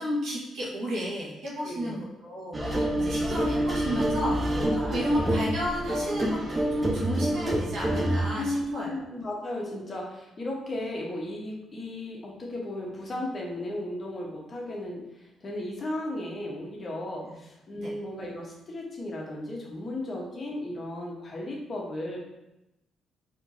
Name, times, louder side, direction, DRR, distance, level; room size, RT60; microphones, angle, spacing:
voice 1, 0.0-9.0 17.7-17.9, equal, 75° right, -5 dB, 1.4 m, -32 dB
voice 2, 1.6-2.0 8.4-22.2, left 1 dB, 35° left, -2 dB, 1.0 m, -35 dB
sound 1, 2.5-8.3, right 1 dB, 20° right, 0.7 m, -27 dB
4.3 x 3.0 x 2.7 m, 0.93 s
cardioid pair, 90°, 0 cm